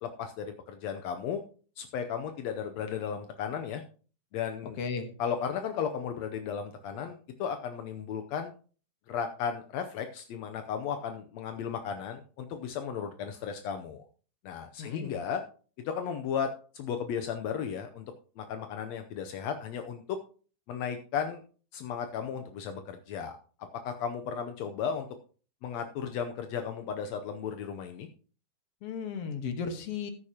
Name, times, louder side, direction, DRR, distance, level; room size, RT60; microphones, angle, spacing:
voice 1, 0.0-1.4 1.8-3.8 4.3-4.8 5.2-8.5 9.1-14.1 14.4-15.4 15.8-16.5 16.7-20.2 20.7-21.4 21.7-23.4 23.8-25.1 25.6-28.1, left 7 dB, 85° left, 6 dB, 1.5 m, -35 dB
voice 2, 4.8-5.1 14.8-15.2 28.8-30.1, left 5 dB, 60° left, 7 dB, 1.8 m, -35 dB
14.5 x 9.7 x 2.8 m, 0.40 s
omnidirectional pair, 4.0 m